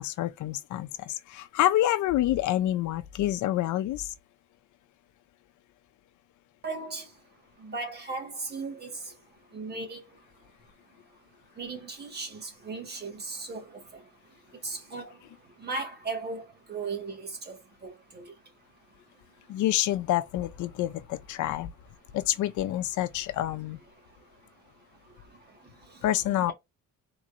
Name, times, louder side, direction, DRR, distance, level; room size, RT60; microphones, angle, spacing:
voice 1, 0.0-4.1 19.5-21.7 22.1-23.8 26.0-26.5, left 13 dB, 70° left, 0.6 m, -27 dB
voice 2, 6.6-7.1 7.6-9.0 9.5-10.0 11.6-13.7 14.6-15.1 15.6-17.5 18.1-18.2 26.3-26.5, right 3 dB, 30° right, 1.6 m, -36 dB
3.9 x 3.0 x 2.5 m
cardioid pair, 125°, 31 cm